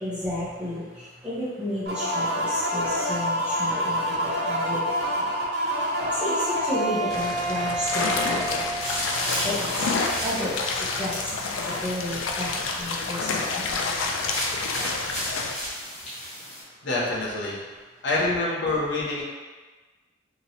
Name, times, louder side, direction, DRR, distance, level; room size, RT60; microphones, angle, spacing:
voice 1, 0.0-4.9 5.2-5.3 6.2-8.7 9.4-9.6 10.2-10.6 11.0-11.2 11.7-13.8, left 1 dB, 5° right, -11 dB, 0.7 m, -32 dB
sound 1, 1.9-9.4, equal, 55° right, 0.5 m, -27 dB
sound 2, 7.1-15.5, left 4 dB, 85° left, 0.4 m, -29 dB
sound 3, 8.8-16.6, left 1 dB, 35° left, 0.9 m, -34 dB
voice 2, 16.8-17.6 18.0-19.2, left 2 dB, 60° left, -5 dB, 0.7 m, -26 dB
3.0 x 2.9 x 2.7 m, 1.3 s
head